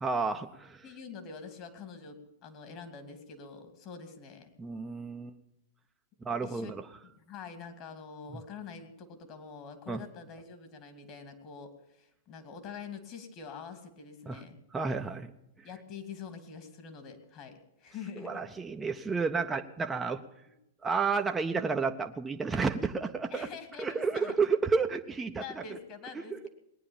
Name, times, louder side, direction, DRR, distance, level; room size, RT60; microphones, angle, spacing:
voice 1, 0.0-0.8 4.6-5.3 6.2-6.8 9.9-10.0 14.3-14.4 14.7-15.3 18.2-20.2 20.8-23.5 23.8-25.6 26.2-26.4, right 4 dB, 15° right, 4 dB, 0.9 m, -31 dB
voice 2, 0.8-4.5 6.4-6.7 7.0-14.6 15.6-18.5 23.3-24.4 25.4-26.5, left 6 dB, 40° left, 8 dB, 2.7 m, -45 dB
19.5 x 9.8 x 7.2 m, 0.84 s
hypercardioid pair, 105°, 0 cm